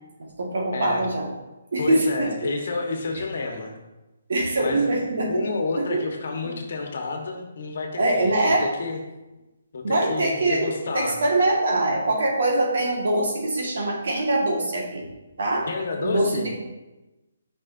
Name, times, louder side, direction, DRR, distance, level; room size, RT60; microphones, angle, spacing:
voice 1, 0.2-1.3 1.7-2.3 4.3-5.4 5.8-6.0 6.4-6.5 8.0-8.7 9.8-10.7 10.9-15.1 15.4-15.7 16.0-16.6, right 2 dB, 70° right, 0 dB, 1.6 m, -23 dB
voice 2, 0.7-1.1 1.8-3.7 4.6-4.9 5.3-9.0 9.7-11.2 15.7-16.5, left 3 dB, 60° left, 3 dB, 1.2 m, -30 dB
8.7 x 5.4 x 2.6 m, 1.1 s
hypercardioid pair, 160°, 0 cm